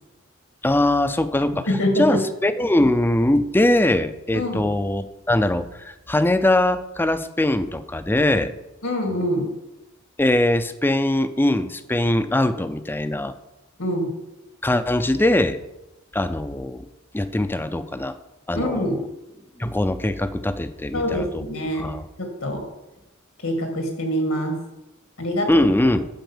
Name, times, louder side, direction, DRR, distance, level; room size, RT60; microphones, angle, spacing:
voice 1, 0.6-1.7 2.0-8.5 10.2-13.3 14.6-15.6 16.1-16.8 17.1-18.2 18.5-19.0 19.6-21.4 21.8-22.0 25.5-26.1, left 1 dB, 10° left, 12 dB, 0.4 m, -21 dB
voice 2, 1.7-2.2 4.3-4.6 8.8-9.4 13.8-14.1 18.5-19.0 20.9-21.8 22.2-22.6 23.4-24.6 25.2-25.7, equal, 80° left, 3 dB, 2.1 m, -24 dB
9.1 x 4.7 x 7.2 m, 0.96 s
head